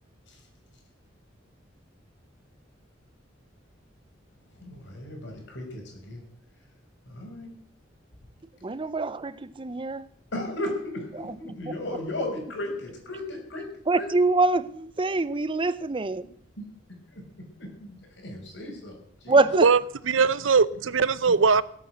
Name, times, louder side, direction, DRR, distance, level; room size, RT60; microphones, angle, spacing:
voice 1, 4.5-6.2 7.0-7.6 10.3-14.1 16.6-16.7 17.1-17.2 17.6-19.4, left 1 dB, 65° left, 6.0 m, -36 dB
voice 2, 8.6-10.1 11.2-11.7 13.9-16.2 19.3-19.7, right 3 dB, 25° right, 0.6 m, -25 dB
voice 3, 20.1-21.6, right 5 dB, 80° right, 0.7 m, -20 dB
17.5 x 8.5 x 7.9 m
head